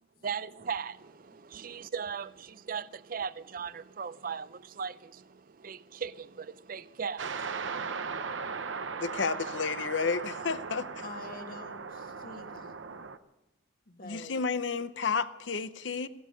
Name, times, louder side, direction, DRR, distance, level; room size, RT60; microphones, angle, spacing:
voice 1, 0.2-7.7, right 6 dB, 45° right, 0.5 m, -38 dB
sound 1, 7.2-13.2, right 5 dB, 75° right, 0.8 m, -38 dB
voice 2, 9.0-10.9 14.0-16.1, left 5 dB, 65° left, 0.7 m, -31 dB
voice 3, 11.0-12.8 13.9-14.3, left 3 dB, 45° left, 1.6 m, -46 dB
17.0 x 13.0 x 6.5 m
head